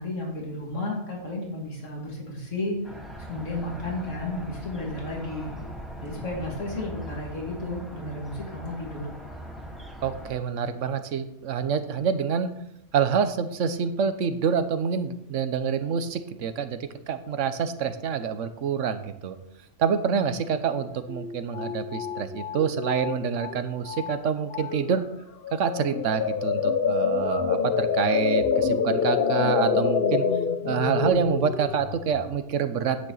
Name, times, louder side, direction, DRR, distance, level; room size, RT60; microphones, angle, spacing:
voice 1, 0.0-5.5 6.0-9.1, left 2 dB, 75° left, -1 dB, 2.9 m, -33 dB
sound 1, 2.8-10.3, equal, ahead, 2.4 m, -40 dB
voice 2, 10.0-12.5 12.9-16.8 17.1-19.4 19.8-25.0 25.5-30.2 30.6-33.0, right 7 dB, 75° right, 10 dB, 1.2 m, -27 dB
sound 2, 20.8-20.9 21.1-23.6 23.9-24.2 24.5-25.0 25.4-32.4, left 6 dB, 55° left, 0.8 m, -26 dB
10.0 x 9.0 x 4.0 m, 0.81 s
omnidirectional pair, 1.3 m